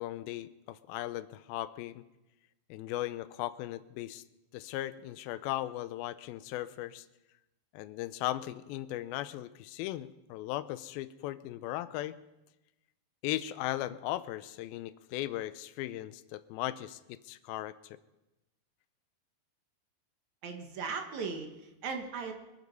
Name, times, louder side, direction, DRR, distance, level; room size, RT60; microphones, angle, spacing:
voice 1, 0.0-2.0 2.7-4.2 4.5-7.1 7.7-12.2 13.2-17.8, left 15 dB, 85° left, 14 dB, 2.5 m, -37 dB
voice 2, 20.4-22.3, right 5 dB, 60° right, 4 dB, 2.4 m, -38 dB
25.0 x 9.4 x 5.5 m, 0.98 s
omnidirectional pair, 4.3 m